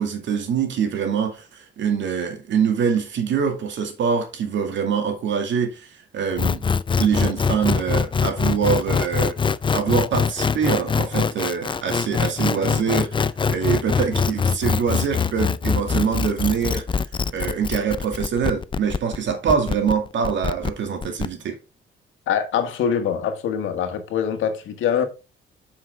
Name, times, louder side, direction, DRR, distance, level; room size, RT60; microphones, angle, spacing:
voice 1, 0.0-5.9 6.1-6.6 7.0-9.3 9.7-13.2 13.5-16.8 17.3-21.6, right 6 dB, 70° right, 2.2 m, -24 dB
sound 1, 6.4-21.3, left 5 dB, 25° left, 0.4 m, -23 dB
voice 2, 22.3-25.1, left 8 dB, 80° left, 1.6 m, -23 dB
7.3 x 5.7 x 3.6 m
cardioid pair, 90°, 20 cm